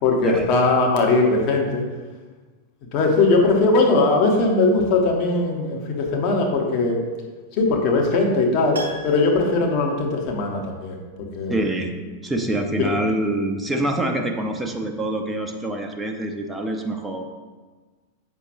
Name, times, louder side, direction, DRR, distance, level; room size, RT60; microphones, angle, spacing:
voice 1, 0.0-1.8 2.9-7.0 7.6-11.5 12.8-12.9, left 3 dB, 40° left, 0 dB, 1.4 m, -20 dB
Piano, 8.7-10.8 11.1-11.2, equal, 65° right, 1.0 m, -38 dB
voice 2, 11.5-11.9 12.2-17.2, right 1 dB, 10° right, 3 dB, 0.7 m, -25 dB
7.9 x 6.0 x 3.1 m, 1.3 s
figure-of-eight pair, 90°, 0 cm